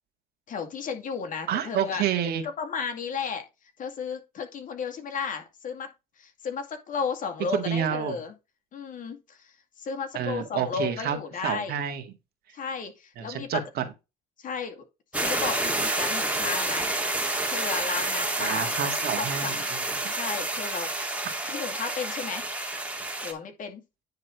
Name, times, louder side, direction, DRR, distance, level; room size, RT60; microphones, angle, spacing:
voice 1, 0.5-2.0 2.4-3.5 3.8-8.3 8.7-11.8 12.5-13.5 14.4-14.8 15.1-16.9 17.5-18.7 19.2-19.6 20.1-20.9 21.4-22.5 23.2-23.8, left 6 dB, 50° left, 2.2 m, -34 dB
voice 2, 1.5-2.4 7.5-8.2 10.1-11.2 11.4-12.0 13.2-13.8 18.4-20.1, right 9 dB, 65° right, 1.9 m, -29 dB
sound 1, 15.1-23.3, right 2 dB, 10° right, 1.9 m, -29 dB
9.6 x 3.9 x 4.7 m
cardioid pair, 110°, 17 cm